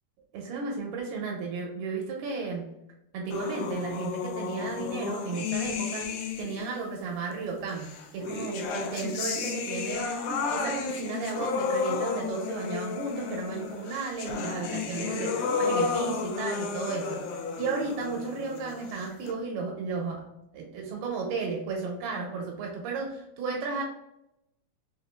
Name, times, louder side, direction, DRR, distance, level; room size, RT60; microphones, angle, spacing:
voice 1, 0.3-2.7 3.1-20.3 20.5-23.8, right 4 dB, 80° right, 0 dB, 2.5 m, -34 dB
sound 1, 3.3-6.8 7.8-19.3, left 5 dB, 85° left, 2.0 m, -32 dB
6.5 x 2.4 x 2.2 m, 0.83 s
omnidirectional pair, 4.9 m